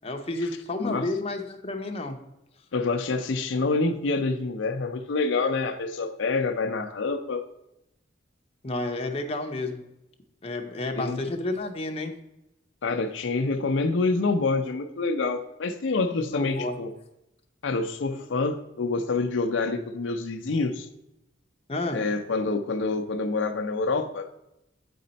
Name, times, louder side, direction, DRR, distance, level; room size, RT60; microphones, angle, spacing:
voice 1, 0.0-2.2 8.6-9.8 10.4-12.2 16.3-16.8 21.7-22.0, left 2 dB, 30° left, 4 dB, 0.7 m, -31 dB
voice 2, 2.7-7.4 11.0-11.2 12.8-16.9 17.6-20.9 21.9-24.3, left 3 dB, 70° left, 6 dB, 0.5 m, -27 dB
8.5 x 4.3 x 4.0 m, 0.88 s
head